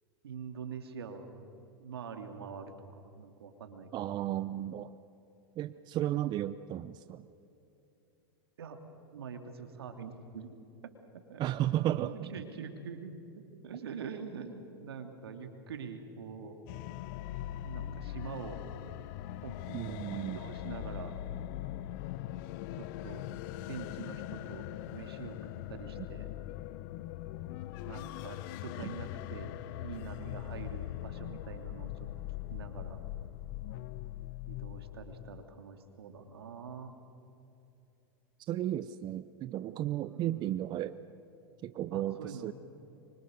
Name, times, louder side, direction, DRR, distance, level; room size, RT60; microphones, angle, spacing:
voice 1, 0.2-1.3 1.8-4.1 8.6-8.8 9.1-10.5 11.3-11.4 12.0-13.1 13.6-16.6 17.6-18.6 19.4-21.1 22.8-23.2 23.7-26.3 27.8-29.5 29.8-31.9 32.5-33.0 34.5-36.9 40.0-40.7 41.9-42.5, right 6 dB, 85° right, 5 dB, 2.8 m, -44 dB
voice 2, 3.9-4.9 5.6-7.3 11.4-12.3 19.7-20.4 26.0-26.1 28.8-28.9 38.5-40.9 41.6-42.5, right 13 dB, 35° right, 13 dB, 0.7 m, -34 dB
sound 1, 16.7-35.4, left 14 dB, 55° left, 0.7 m, -41 dB
25.5 x 24.5 x 6.6 m, 2.9 s
hypercardioid pair, 110°, 13 cm